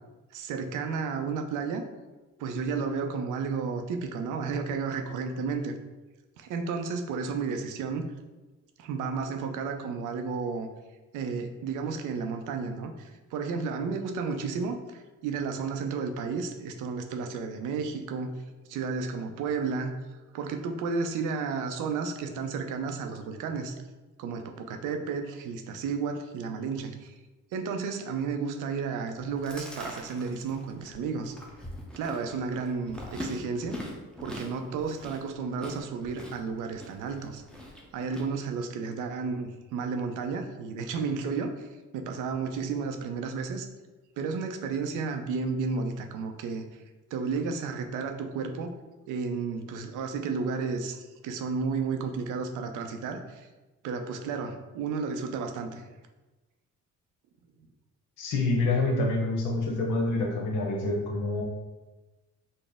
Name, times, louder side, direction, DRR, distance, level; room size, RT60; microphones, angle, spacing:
voice 1, 0.3-1.8 2.4-5.7 6.4-8.1 8.8-10.7 11.1-18.3 18.7-19.9 20.3-23.7 24.2-27.1 27.5-31.4 31.9-33.8 34.2-37.4 37.9-43.7 44.2-46.8 47.1-48.7 49.1-53.5 53.8-55.8, right 5 dB, 85° right, 6 dB, 0.5 m, -32 dB
Chewing mastication, 29.2-38.2, equal, 5° left, 0.6 m, -43 dB
voice 2, 58.2-61.4, left 2 dB, 90° left, 0 dB, 0.9 m, -27 dB
4.1 x 2.0 x 3.4 m, 1.1 s
cardioid pair, 90°, 30 cm